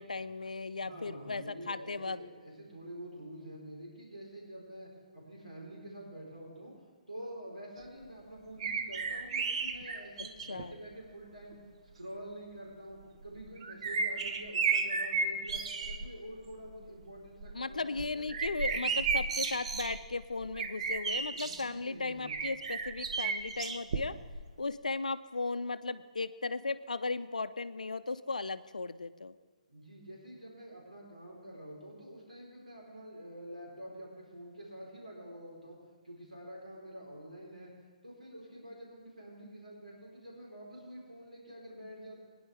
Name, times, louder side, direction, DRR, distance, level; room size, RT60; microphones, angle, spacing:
voice 1, 0.0-2.2 10.5-10.8 17.5-24.1 24.6-29.4, left 3 dB, 80° left, 13 dB, 0.5 m, -36 dB
voice 2, 0.8-6.7 7.1-11.6 11.9-18.3 21.2-22.4 29.7-35.8 36.0-37.7 38.0-42.2, equal, 85° right, -4 dB, 3.7 m, -47 dB
sound 1, 8.6-10.7 11.5-11.6 13.2-16.1 16.5-16.9 17.3-21.6 22.3-24.4 24.7-24.8, right 5 dB, 50° right, 0.8 m, -33 dB
21.5 x 10.0 x 3.3 m, 1.4 s
figure-of-eight pair, 125°, 4 cm